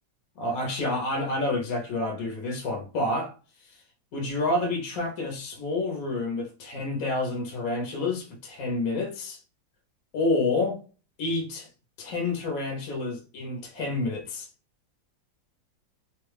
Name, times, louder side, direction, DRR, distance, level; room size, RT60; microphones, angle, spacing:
voice 1, 0.4-3.4 3.7-3.8 4.1-9.4 10.1-10.8 11.2-11.7 12.0-14.5, left 2 dB, 55° left, 1.1 m, -29 dB
3.1 x 2.3 x 3.3 m
omnidirectional pair, 2.0 m